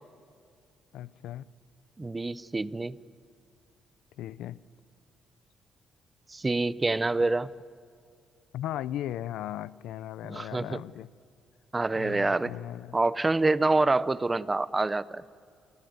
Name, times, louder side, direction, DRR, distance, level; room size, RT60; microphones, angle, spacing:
voice 1, 0.9-1.4 4.2-4.6 7.2-7.3 8.5-11.1 11.9-13.0, left 12 dB, 85° left, 18 dB, 0.6 m, -37 dB
voice 2, 2.0-3.0 6.3-7.5 10.3-10.8 11.7-12.5 12.9-15.2, right 3 dB, 20° right, 17 dB, 0.7 m, -26 dB
28.0 x 19.5 x 9.6 m, 2.4 s
cardioid pair, 90°, 0 cm